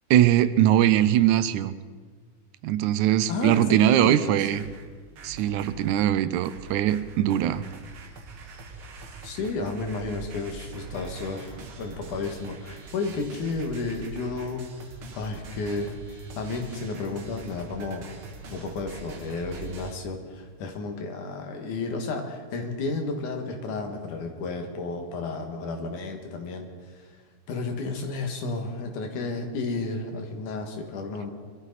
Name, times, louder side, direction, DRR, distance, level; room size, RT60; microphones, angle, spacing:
voice 1, 0.1-1.7 2.6-4.6 5.2-7.6, right 12 dB, 80° right, 14 dB, 2.0 m, -21 dB
voice 2, 3.3-4.3 9.2-18.0 18.5-27.1 27.5-31.3, left 3 dB, 80° left, 3 dB, 3.1 m, -32 dB
sound 1, 4.2-5.9 6.4-19.9, right 4 dB, 50° right, 2.0 m, -43 dB
23.0 x 13.0 x 4.1 m, 1.5 s
omnidirectional pair, 3.5 m